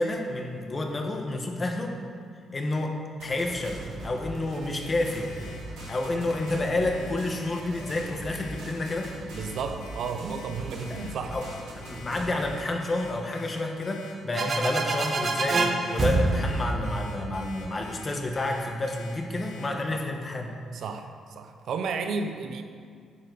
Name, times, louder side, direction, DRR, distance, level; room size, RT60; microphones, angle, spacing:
voice 1, 0.0-2.0 2.5-5.3 5.9-9.1 10.9-11.0 11.3-20.5, left 2 dB, 30° left, 2 dB, 1.5 m, -30 dB
sound 1, 3.2-12.4, right 1 dB, 90° right, 3.0 m, -41 dB
Alarm, 4.8-19.6, left 4 dB, 85° left, 2.7 m, -48 dB
voice 2, 9.3-11.4 14.3-14.5 19.9-20.0 20.7-21.1 21.4-22.6, right 5 dB, 70° right, 7 dB, 0.8 m, -33 dB
sound 2, 14.3-18.0, right 3 dB, 45° right, 0.9 m, -27 dB
11.5 x 9.8 x 4.2 m, 2.1 s
cardioid pair, 90°, 0 cm